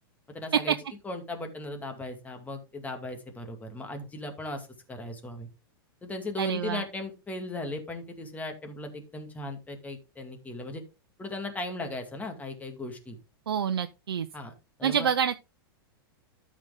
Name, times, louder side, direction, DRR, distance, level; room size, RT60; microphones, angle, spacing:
voice 1, 0.3-0.8 1.0-5.5 6.0-10.8 11.2-13.2 14.3-14.5 14.8-15.1, left 2 dB, 10° left, 2.4 m, -37 dB
voice 2, 6.4-6.8 13.5-14.3 14.8-15.4, right 8 dB, 90° right, 0.7 m, -27 dB
13.0 x 5.2 x 3.7 m
hypercardioid pair, 120°, 13 cm